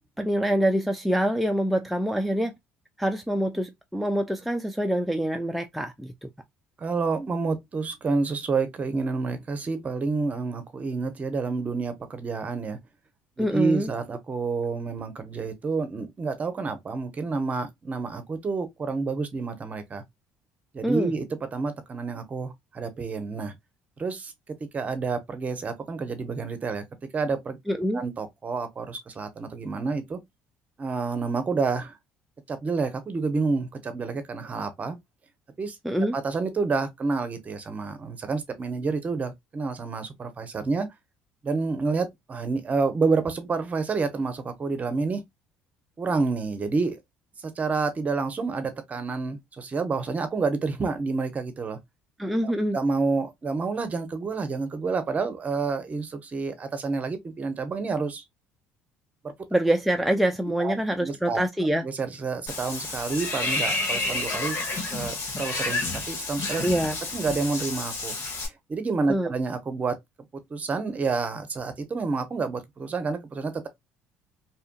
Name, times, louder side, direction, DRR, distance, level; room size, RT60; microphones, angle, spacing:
voice 1, 0.2-2.5 3.0-6.3 13.4-13.9 20.8-21.1 27.7-28.0 35.8-36.2 52.2-52.8 59.5-61.8 66.6-67.0 69.1-69.3, right 1 dB, ahead, 0.4 m, -25 dB
voice 2, 6.8-12.8 13.4-20.0 20.7-21.2 21.5-23.5 24.0-24.3 24.7-26.8 27.1-27.6 27.9-30.2 30.8-31.9 32.5-35.0 35.6-35.8 36.1-40.9 41.4-45.2 46.0-47.0 47.4-51.8 52.4-58.2 59.2-59.3 60.6-60.7 61.0-61.4 61.8-64.6 64.9-66.6 67.1-68.1 68.4-70.0 70.5-73.7, right 4 dB, 35° right, 0.8 m, -29 dB
Water / Bathtub (filling or washing), 62.5-68.5, left 2 dB, 55° left, 1.4 m, -30 dB
2.8 x 2.5 x 2.2 m
supercardioid pair, 80°, 5 cm